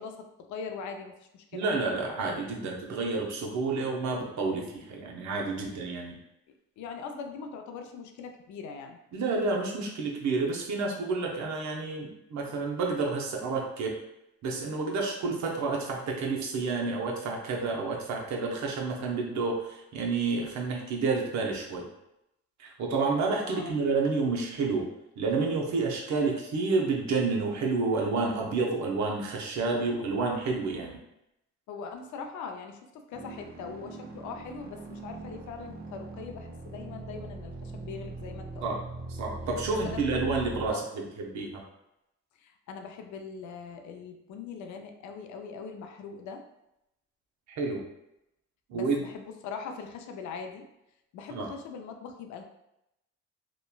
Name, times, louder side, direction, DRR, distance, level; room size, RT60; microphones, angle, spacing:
voice 1, 0.0-1.7 5.6-5.8 6.8-9.0 23.4-23.8 31.7-38.8 39.7-40.2 40.7-41.0 42.4-46.4 48.7-50.6 51.1-52.4, left 5 dB, 75° left, 5 dB, 0.4 m, -41 dB
voice 2, 1.5-6.2 9.1-13.9 14.4-21.8 22.6-24.9 25.2-31.0 38.6-38.8 39.1-41.6 47.5-47.8 48.7-49.0 51.3-51.5, right 4 dB, 70° right, 0 dB, 0.7 m, -29 dB
sound 1, 33.1-40.7, right 2 dB, 30° right, 0.5 m, -41 dB
2.9 x 2.1 x 2.3 m, 0.85 s
cardioid pair, 90°, 30 cm